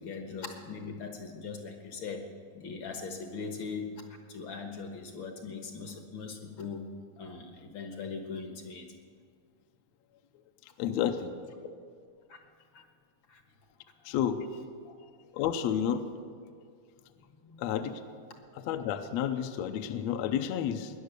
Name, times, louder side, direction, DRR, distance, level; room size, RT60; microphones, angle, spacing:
voice 1, 0.0-2.3 2.5-4.0 4.3-6.8 7.2-8.9 11.6-11.7 12.3-12.4 13.3-13.4 14.8-14.9 17.1-17.7, left 5 dB, 60° left, 5 dB, 1.3 m, -40 dB
voice 2, 10.8-11.3 14.1-14.4 15.4-16.0 17.6-17.9 18.7-20.9, left 9 dB, 80° left, 7 dB, 1.6 m, -30 dB
20.5 x 10.5 x 6.8 m, 2.1 s
omnidirectional pair, 3.9 m